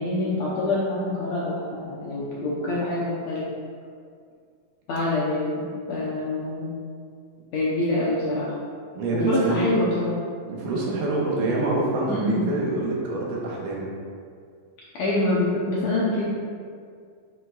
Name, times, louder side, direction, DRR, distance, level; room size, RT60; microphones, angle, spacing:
voice 1, 0.0-3.5 4.9-5.6 5.9-6.7 7.5-8.5 9.1-10.1 12.1-12.4 14.9-16.3, left 2 dB, 70° left, -6 dB, 1.7 m, -25 dB
voice 2, 8.9-9.7 10.5-13.9, right 2 dB, 75° right, -4 dB, 2.6 m, -26 dB
9.6 x 5.7 x 2.4 m, 2.1 s
omnidirectional pair, 4.0 m